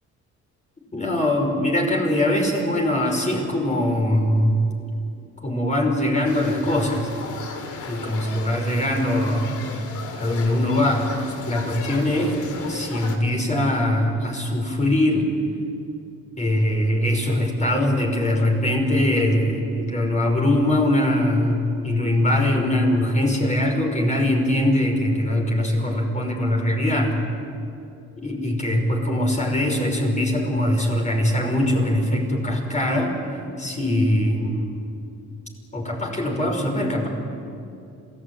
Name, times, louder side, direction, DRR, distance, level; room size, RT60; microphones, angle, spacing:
voice 1, 0.9-4.9 5.4-7.1 7.9-9.6 10.1-11.1 11.5-12.3 12.7-15.3 16.4-21.6 21.8-27.2 28.2-33.2 33.6-34.7 35.7-37.1, left 1 dB, 25° left, 1 dB, 5.7 m, -22 dB
sound 1, 6.2-13.2, left 4 dB, 75° left, 2.9 m, -35 dB
27.0 x 17.0 x 9.2 m, 2.6 s
cardioid pair, 90°, 30 cm